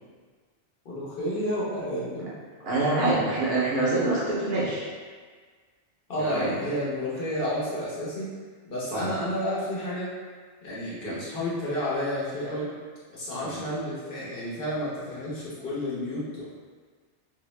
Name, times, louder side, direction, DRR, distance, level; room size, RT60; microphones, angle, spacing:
voice 1, 0.8-2.4 6.1-8.3 8.7-10.1 10.6-12.7 13.1-16.4, left 1 dB, 55° left, -8 dB, 0.9 m, -31 dB
voice 2, 2.6-4.9 6.2-6.5 8.9-9.1 11.0-11.2 13.4-13.6, right 2 dB, 65° right, -6 dB, 0.8 m, -26 dB
2.7 x 2.0 x 3.1 m, 1.5 s
omnidirectional pair, 1.2 m